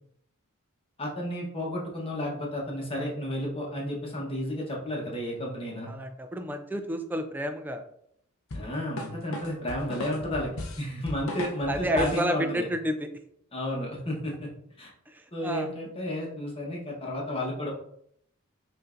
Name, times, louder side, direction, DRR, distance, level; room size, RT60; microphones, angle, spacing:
voice 1, 1.0-5.9 8.5-12.7 13.5-14.5 14.8-14.9 15.3-17.7, left 1 dB, 25° left, -2 dB, 1.0 m, -32 dB
voice 2, 5.9-7.8 11.7-13.1 15.4-15.7, equal, 10° right, 6 dB, 0.3 m, -29 dB
sound 1, 8.5-12.3, left 1 dB, 70° left, 0.6 m, -37 dB
5.2 x 2.6 x 2.5 m, 0.70 s
head